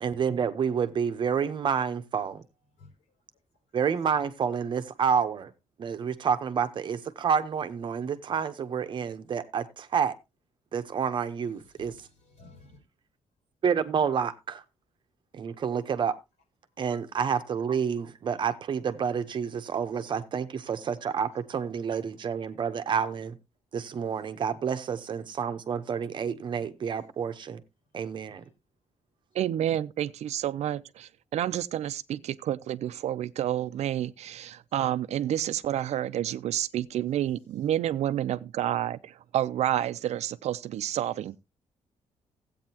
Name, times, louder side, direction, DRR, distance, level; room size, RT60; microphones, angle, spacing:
voice 1, 0.0-2.4 3.7-5.5 5.8-10.1 10.7-11.9 13.6-14.6 15.3-16.1 16.8-23.4 23.7-27.6 27.9-28.4, right 7 dB, 45° right, 0.9 m, -29 dB
voice 2, 11.6-12.8 20.0-20.1 28.0-28.5, left 3 dB, 85° left, 4.0 m, -55 dB
voice 3, 29.3-41.4, right 11 dB, 70° right, 0.5 m, -29 dB
15.5 x 8.6 x 2.8 m
wide cardioid pair, 175°, 12 cm